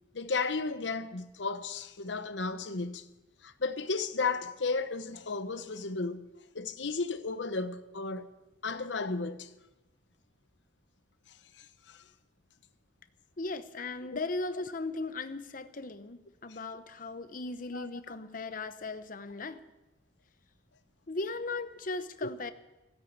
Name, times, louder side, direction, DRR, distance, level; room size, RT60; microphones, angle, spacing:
voice 1, 0.1-3.1 3.4-6.3 6.5-8.3 8.6-9.5 11.3-12.0 14.1-14.2 16.5-16.6 17.7-18.2 22.2-22.3, left 4 dB, 80° left, 0.9 m, -34 dB
voice 2, 13.4-19.6 21.1-22.5, left 3 dB, 50° left, 0.9 m, -37 dB
16.5 x 9.2 x 8.5 m
head